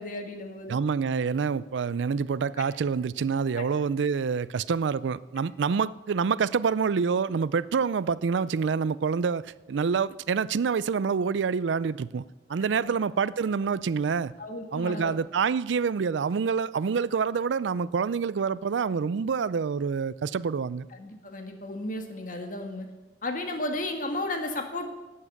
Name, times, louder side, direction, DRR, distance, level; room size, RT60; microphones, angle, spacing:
voice 1, 0.0-0.8 3.6-3.7 12.7-12.9 14.4-15.2 21.0-22.9 23.2-24.9, left 1 dB, 45° left, 5 dB, 1.6 m, -34 dB
voice 2, 0.7-12.2 12.5-14.3 14.7-20.9, right 5 dB, 85° right, 18 dB, 0.4 m, -27 dB
12.0 x 8.7 x 7.2 m, 1.1 s
head